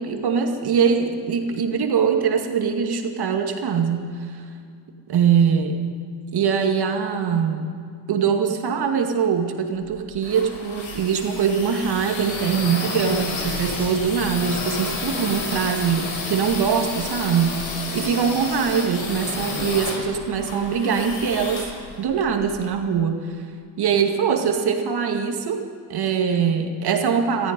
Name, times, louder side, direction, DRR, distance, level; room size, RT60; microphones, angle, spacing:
voice 1, 0.0-4.4 5.1-5.8 6.3-7.7 8.1-17.7 17.9-21.7 22.0-23.3 23.8-25.6 25.9-27.5, right 6 dB, 55° right, 4 dB, 2.2 m, -22 dB
sound 1, 9.8-22.6, left 3 dB, 75° left, 4.7 m, -31 dB
18.5 x 14.0 x 5.4 m, 2.3 s
supercardioid pair, 70°, 46 cm